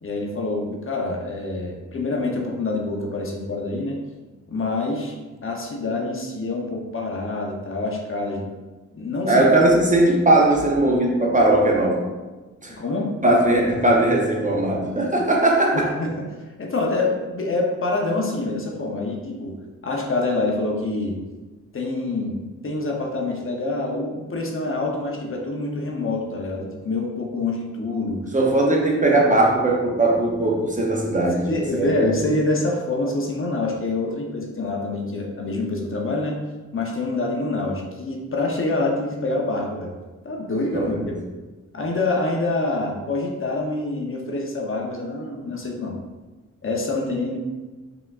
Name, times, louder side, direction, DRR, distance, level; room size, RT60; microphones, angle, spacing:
voice 1, 0.0-4.0 4.5-5.1 5.4-8.5 8.9-9.5 12.7-13.1 15.7-16.2 16.6-19.5 19.8-21.2 21.7-22.3 22.6-28.2 31.5-36.4 36.7-39.9 40.2-41.0 41.7-46.0 46.6-47.4, left 2 dB, 45° left, 0 dB, 0.7 m, -26 dB
voice 2, 9.3-12.0 12.6-12.7 13.2-15.9 28.3-32.3 40.7-41.1, right 2 dB, 25° right, -1 dB, 0.6 m, -19 dB
5.0 x 3.5 x 2.3 m, 1.2 s
wide cardioid pair, 135°, 31 cm